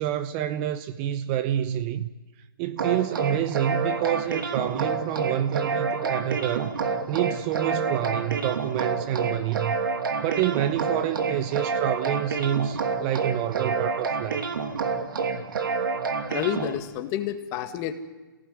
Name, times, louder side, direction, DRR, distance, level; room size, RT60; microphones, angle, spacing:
voice 1, 0.0-2.1 2.6-6.7 7.1-9.8 10.2-14.5, right 11 dB, 25° right, 0.8 m, -28 dB
sound 1, 2.8-16.8, right 5 dB, 70° right, 2.8 m, -28 dB
voice 2, 16.3-17.9, left 11 dB, 25° left, 1.8 m, -29 dB
27.5 x 17.5 x 9.7 m
hypercardioid pair, 150°, 12 cm